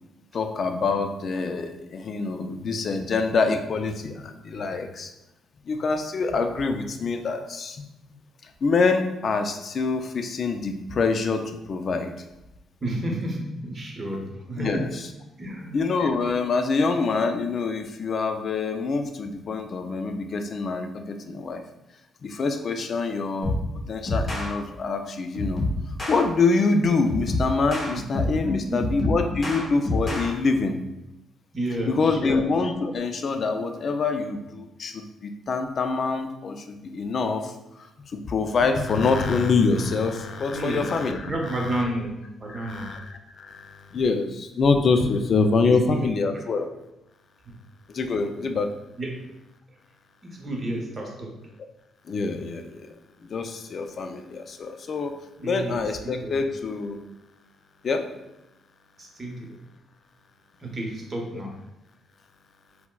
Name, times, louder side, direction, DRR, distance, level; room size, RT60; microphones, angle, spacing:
voice 1, 0.3-5.1 5.7-7.8 8.6-12.1 14.6-15.1 15.7-21.6 22.2-23.6 23.9-25.6 26.1-30.8 31.9-37.9 38.1-41.3 42.5-46.7 47.9-48.7 52.1-52.9 53.2-55.1 55.4-57.0 57.8-58.0, left 4 dB, 50° left, 6 dB, 0.3 m, -25 dB
voice 2, 12.8-14.8 15.4-15.8 27.9-28.0 28.4-29.4 31.5-32.4 40.5-40.9 41.2-42.9 45.6-46.1 47.4-47.5 49.0-49.1 50.2-51.3 55.4-56.4 59.0-59.6 60.6-61.6, right 1 dB, 35° right, 0 dB, 0.8 m, -31 dB
sound 1, 23.4-23.7 24.1-24.5 25.3-26.2 27.1-28.4 28.8-30.3, left 1 dB, 30° left, 0.9 m, -27 dB
4.2 x 2.0 x 2.3 m, 0.95 s
cardioid pair, 90°, 0 cm